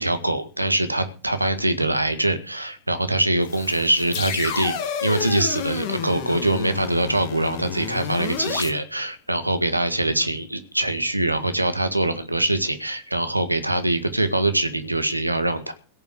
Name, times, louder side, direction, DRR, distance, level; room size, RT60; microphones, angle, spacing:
voice 1, 0.0-4.8 5.0-15.7, right 1 dB, 85° right, 9 dB, 1.8 m, -23 dB
sound 1, 3.4-8.7, left 7 dB, 50° left, 2.4 m, -30 dB
17.0 x 7.1 x 7.6 m, 0.37 s
figure-of-eight pair, 90°, 0 cm